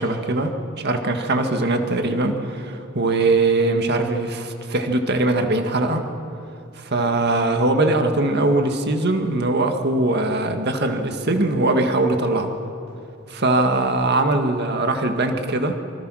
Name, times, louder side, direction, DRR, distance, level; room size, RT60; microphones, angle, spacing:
voice 1, 0.0-6.0 6.8-12.5 13.3-15.8, right 2 dB, 50° right, 5 dB, 1.9 m, -21 dB
26.5 x 24.5 x 6.4 m, 2.7 s
head